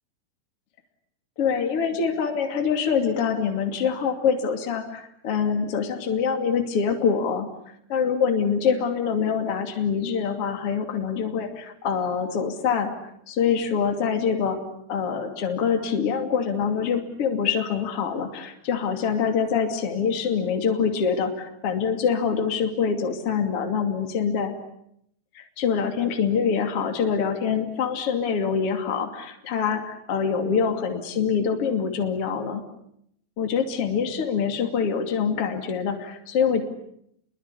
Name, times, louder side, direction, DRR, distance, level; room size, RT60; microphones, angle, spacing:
voice 1, 1.4-7.5 7.9-12.9 13.3-14.6 14.9-24.5 25.3-32.6 33.4-36.6, left 6 dB, 40° left, 4 dB, 3.3 m, -25 dB
29.5 x 23.5 x 8.5 m, 0.74 s
omnidirectional pair, 4.2 m